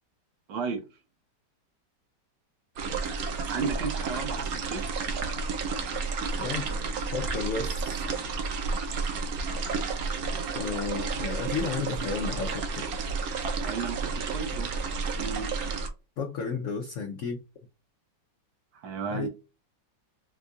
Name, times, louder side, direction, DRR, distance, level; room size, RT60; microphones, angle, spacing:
voice 1, 0.5-0.8 3.5-4.8 13.6-14.7 15.1-15.5 18.7-19.3, right 5 dB, 90° right, 1.6 m, -33 dB
sound 1, 2.8-15.9, right 4 dB, 65° right, 1.0 m, -31 dB
voice 2, 6.4-6.8 7.1-8.0 10.5-12.8 16.2-17.4 19.1-19.3, left 5 dB, 85° left, 0.6 m, -32 dB
4.5 x 2.3 x 2.5 m
omnidirectional pair, 2.0 m